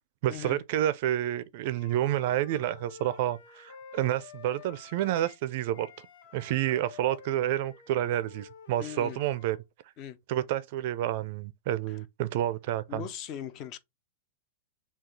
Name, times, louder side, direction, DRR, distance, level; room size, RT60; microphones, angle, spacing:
voice 1, 0.2-5.9 6.3-9.6 10.3-13.1, right 12 dB, 50° right, 0.4 m, -29 dB
Wind instrument woodwind instrument, 1.7-5.4 5.7-9.6, left 6 dB, 60° left, 1.5 m, -50 dB
voice 2, 8.8-9.2 10.0-10.2 11.9-12.0 12.9-13.8, left 9 dB, 30° left, 0.5 m, -39 dB
5.8 x 2.3 x 3.2 m
supercardioid pair, 170°, 0 cm